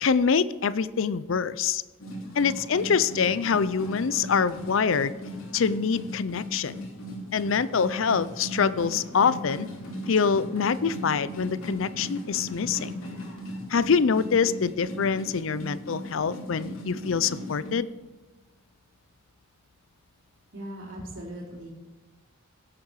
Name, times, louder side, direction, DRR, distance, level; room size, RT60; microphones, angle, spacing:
voice 1, 0.0-1.8 2.4-5.1 5.5-6.9 7.3-9.7 10.1-12.9 13.7-17.9, left 6 dB, 70° left, 16 dB, 0.5 m, -25 dB
sound 1, 2.0-17.7, equal, 85° left, 3.2 m, -38 dB
voice 2, 20.5-21.7, right 1 dB, 65° right, -4 dB, 4.1 m, -39 dB
16.0 x 8.6 x 4.8 m, 1.2 s
head